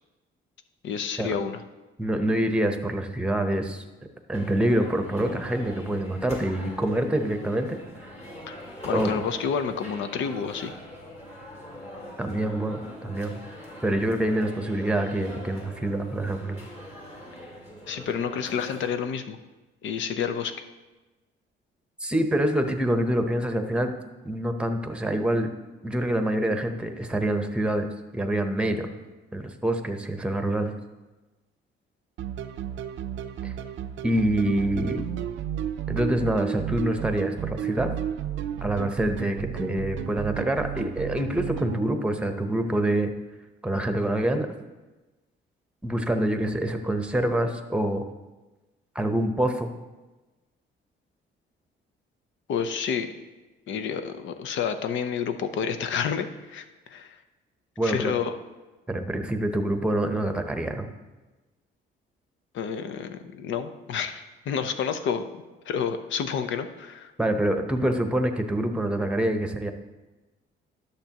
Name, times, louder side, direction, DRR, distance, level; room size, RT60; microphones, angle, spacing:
voice 1, 0.8-1.6 8.5-8.6 8.9-10.7 17.9-19.4 19.8-20.5 52.5-53.1 53.7-57.2 57.8-58.3 62.5-67.1, left 7 dB, 75° left, 8 dB, 0.7 m, -29 dB
voice 2, 2.0-3.8 4.3-8.1 8.9-9.1 12.2-13.4 13.8-16.7 22.0-23.9 24.2-25.5 25.8-27.9 28.1-28.9 29.3-30.7 33.4-33.5 34.0-35.1 35.9-37.9 38.6-43.1 43.6-44.5 45.8-48.0 48.9-49.7 57.8-58.1 58.9-60.9 67.2-69.7, right 1 dB, 5° right, 6 dB, 0.8 m, -26 dB
sound 1, 4.3-18.9, left 1 dB, 35° left, 2.2 m, -42 dB
sound 2, 32.2-41.8, right 10 dB, 75° right, 0.5 m, -33 dB
11.5 x 6.6 x 2.9 m, 1.1 s
cardioid pair, 90°, 20 cm